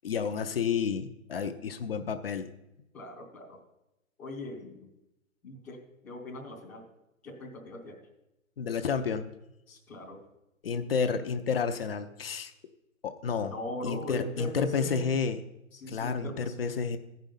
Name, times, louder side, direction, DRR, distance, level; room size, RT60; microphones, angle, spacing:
voice 1, 0.0-2.5 8.6-9.3 10.6-12.5 13.0-13.5 13.8-15.4 15.9-17.0, left 6 dB, 45° left, 7 dB, 0.6 m, -30 dB
voice 2, 2.9-3.6 4.2-4.9 5.4-6.8 7.2-8.0 9.7-10.2 13.5-15.2 15.7-16.8, left 1 dB, 5° left, -8 dB, 0.6 m, -40 dB
13.5 x 5.3 x 5.6 m, 0.91 s
hypercardioid pair, 155°, 40 cm